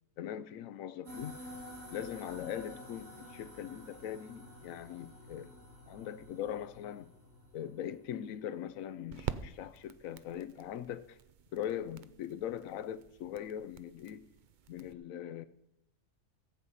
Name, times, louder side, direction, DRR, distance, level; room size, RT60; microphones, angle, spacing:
voice 1, 0.2-1.4 1.9-5.5 5.9-7.1 7.5-11.2 11.5-14.3 14.7-15.4, left 10 dB, 90° left, 1.0 m, -41 dB
sound 1, 1.1-8.7, left 1 dB, 75° right, 3.1 m, -51 dB
sound 2, 7.0-14.9, right 8 dB, 55° right, 0.5 m, -47 dB
14.5 x 8.0 x 5.5 m
omnidirectional pair, 1.4 m